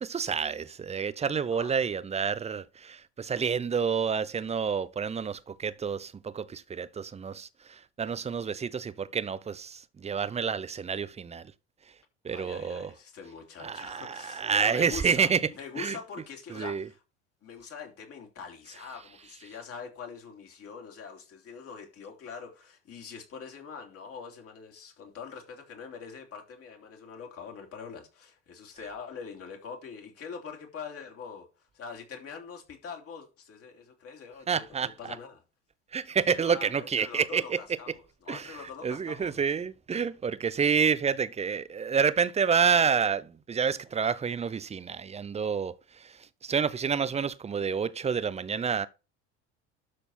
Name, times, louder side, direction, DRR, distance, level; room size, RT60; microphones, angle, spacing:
voice 1, 0.0-11.4 12.2-12.9 13.6-15.4 15.8-16.0 16.5-16.9 34.5-34.9 35.9-37.6 38.3-38.5 38.8-45.7 46.0-46.1 46.4-48.9, right 6 dB, 20° right, 0.6 m, -29 dB
voice 2, 12.3-15.3 15.6-17.0 17.4-35.4 36.3-39.4, left 6 dB, 45° left, 3.0 m, -44 dB
12.5 x 4.2 x 4.3 m
hypercardioid pair, 75°, 33 cm